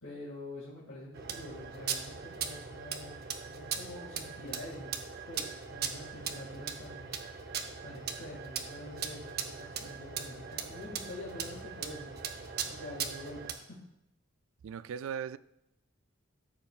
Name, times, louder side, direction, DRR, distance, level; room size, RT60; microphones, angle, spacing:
voice 1, 0.0-4.9 5.3-7.1 7.8-12.1 12.7-13.8, left 1 dB, 75° left, 2.1 m, -46 dB
sound 1, 1.1-13.5, right 7 dB, 45° right, 0.6 m, -39 dB
voice 2, 14.6-15.4, right 7 dB, 75° right, 0.3 m, -38 dB
13.0 x 7.2 x 2.4 m
head